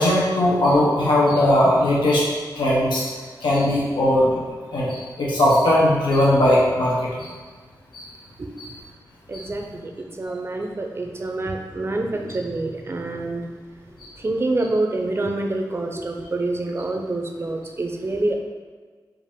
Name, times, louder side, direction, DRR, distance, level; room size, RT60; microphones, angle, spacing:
voice 1, 0.0-2.3 2.5-3.1 3.4-4.4 4.7-7.3 7.9-8.1 8.6-8.7 9.3-9.4 14.0-14.1, left 1 dB, 90° left, -5 dB, 0.8 m, -19 dB
voice 2, 9.3-13.5 14.2-18.3, right 2 dB, 35° right, 3 dB, 0.5 m, -27 dB
4.8 x 2.5 x 3.5 m, 1.5 s
wide cardioid pair, 90°, 8 cm